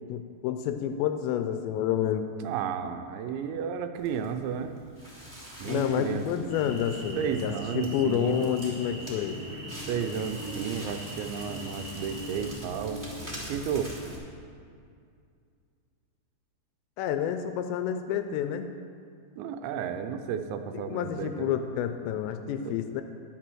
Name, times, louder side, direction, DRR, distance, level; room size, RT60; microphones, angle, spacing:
voice 1, 0.1-2.3 5.7-9.4 17.0-18.7 20.7-23.0, left 9 dB, 85° left, 8 dB, 2.6 m, -29 dB
voice 2, 2.4-4.7 5.6-6.8 7.2-8.5 9.9-13.0 13.5-13.9 19.4-21.5 22.7-22.8, right 7 dB, 85° right, 8 dB, 2.9 m, -33 dB
Crackle, 4.0-14.1, equal, 15° right, 0.7 m, -43 dB
sound 1, 6.5-12.5, right 1 dB, 65° right, 0.9 m, -42 dB
10.5 x 8.2 x 6.2 m, 2.3 s
omnidirectional pair, 5.3 m